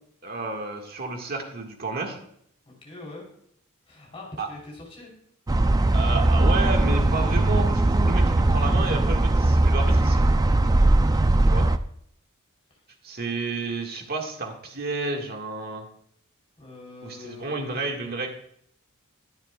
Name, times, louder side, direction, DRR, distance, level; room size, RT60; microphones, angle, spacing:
voice 1, 0.2-2.2 4.4-4.5 5.9-10.2 11.5-11.7 13.0-15.9 17.0-18.3, right 3 dB, 45° right, 2 dB, 1.7 m, -31 dB
voice 2, 2.6-3.3 3.9-5.1 12.7-12.8 16.6-17.9, left 2 dB, 25° left, -2 dB, 3.4 m, -43 dB
sound 1, 5.5-11.8, right 2 dB, 15° right, 0.3 m, -20 dB
21.5 x 7.3 x 2.3 m, 0.67 s
head